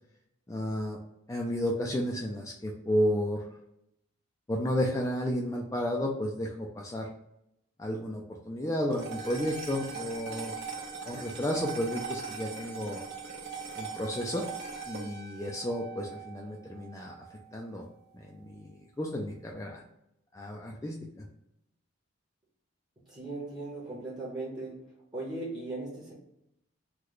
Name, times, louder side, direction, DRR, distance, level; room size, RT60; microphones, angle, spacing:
voice 1, 0.5-1.0 1.3-3.5 4.5-7.1 7.8-10.5 11.1-13.0 13.8-14.4 14.9-17.2 17.5-17.9 18.1-19.8 20.3-21.2, equal, 15° left, -1 dB, 0.3 m, -32 dB
sound 1, 8.9-17.4, right 5 dB, 55° right, 0.7 m, -40 dB
voice 2, 23.0-26.1, right 2 dB, 20° right, -6 dB, 0.8 m, -38 dB
3.1 x 2.2 x 3.8 m, 0.79 s
head